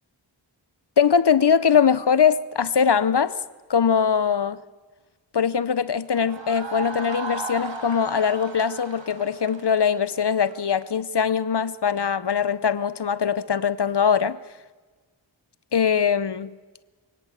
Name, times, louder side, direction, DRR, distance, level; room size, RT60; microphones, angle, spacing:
voice 1, 1.0-3.4 3.7-4.6 5.3-14.4 15.7-16.6, left 7 dB, 60° left, 0.8 m, -21 dB
sound 1, 6.1-10.9, right 3 dB, 75° right, 2.2 m, -35 dB
22.5 x 18.0 x 8.1 m
wide cardioid pair, 60°, 45 cm